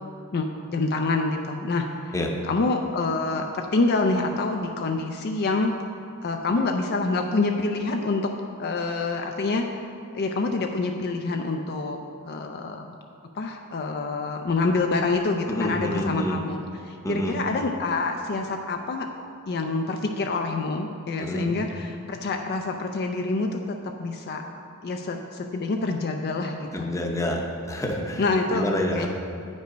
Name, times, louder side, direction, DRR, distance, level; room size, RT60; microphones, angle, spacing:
voice 1, 0.7-2.1 2.5-5.7 6.2-8.3 8.6-9.7 10.1-12.0 12.3-12.9 13.4-19.1 19.5-24.4 24.8-26.9 28.2-28.7 28.9-29.1, left 3 dB, 45° left, 3 dB, 0.4 m, -26 dB
voice 2, 15.5-16.4 17.0-17.4 21.2-21.5 26.7-27.4 27.7-29.1, left 1 dB, 15° left, 1 dB, 0.7 m, -28 dB
9.0 x 5.3 x 5.1 m, 2.5 s
head